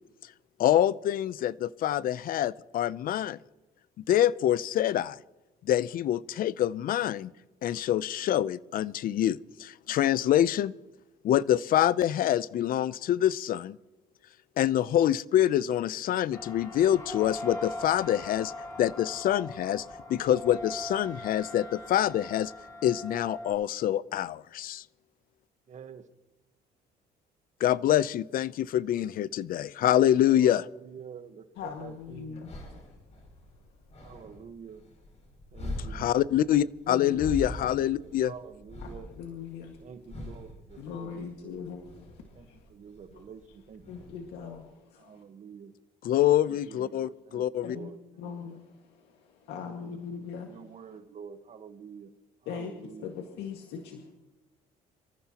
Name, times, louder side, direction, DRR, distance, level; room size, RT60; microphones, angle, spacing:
voice 1, 0.6-3.4 4.1-5.2 5.6-7.3 7.6-10.7 11.2-13.8 14.6-18.5 18.8-22.5 22.8-24.8 27.6-30.6 35.9-38.3 46.0-47.8, left 11 dB, 55° left, 19 dB, 0.6 m, -26 dB
sound 1, 16.3-23.5, left 1 dB, 20° left, 7.2 m, -41 dB
voice 2, 25.7-26.1 30.2-32.4 34.0-34.9 35.5-36.3 37.6-39.1 39.8-41.6 42.3-44.5 45.0-45.7 46.4-48.3 49.5-50.0 50.3-52.1 52.4-53.1, right 7 dB, 45° right, 9 dB, 1.3 m, -48 dB
voice 3, 31.6-32.6 36.9-37.4 37.7-37.8 38.8-39.8 40.8-42.7 43.2-43.3 43.9-45.2 47.6-47.9 48.2-50.8 52.5-52.7 53.0-54.1, left 6 dB, 85° left, 2 dB, 1.9 m, -41 dB
sound 2, 31.6-44.6, left 1 dB, 40° left, 7.0 m, -43 dB
26.5 x 14.5 x 3.0 m, 1.0 s
cardioid pair, 110°, 17 cm